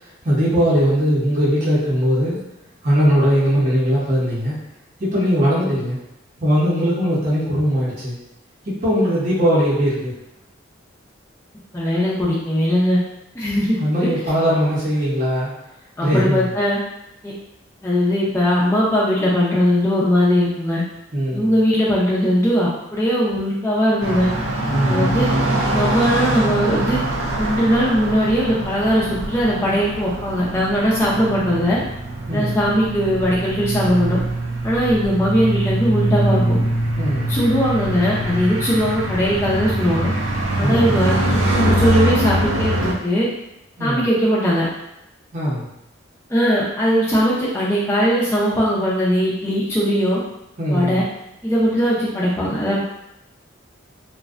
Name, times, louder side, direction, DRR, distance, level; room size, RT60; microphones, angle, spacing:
voice 1, 0.2-2.4 2.8-4.6 5.0-6.0 6.4-8.2 8.6-10.1 13.8-15.5 16.0-16.5 21.1-21.6 24.7-25.2 32.3-32.6 37.0-37.3 40.6-41.0 43.8-44.1 45.3-45.7 50.6-51.0, equal, 40° right, -8 dB, 0.7 m, -20 dB
voice 2, 11.7-13.0 13.3-14.2 16.0-16.8 17.2-17.3 17.8-20.8 21.3-24.3 24.9-25.3 25.6-27.0 27.4-31.8 32.3-34.2 34.6-36.6 37.3-40.1 40.6-43.3 43.8-44.7 46.3-50.2 50.7-51.0 51.4-52.8, equal, 15° left, -7 dB, 0.4 m, -19 dB
sound 1, 24.0-42.9, right 1 dB, 85° right, 0.4 m, -23 dB
2.5 x 2.1 x 2.4 m, 0.87 s
head